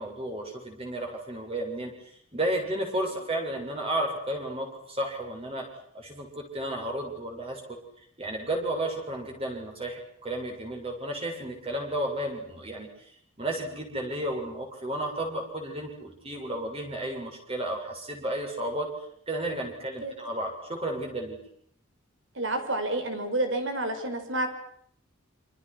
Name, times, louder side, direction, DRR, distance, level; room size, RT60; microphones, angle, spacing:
voice 1, 0.0-1.9 2.3-5.7 5.9-7.6 8.2-12.9 13.4-18.9 19.3-21.4, right 1 dB, 25° right, 2 dB, 7.4 m, -32 dB
voice 2, 22.3-24.5, right 1 dB, 60° right, 7 dB, 5.1 m, -29 dB
29.0 x 27.0 x 6.3 m, 0.67 s
head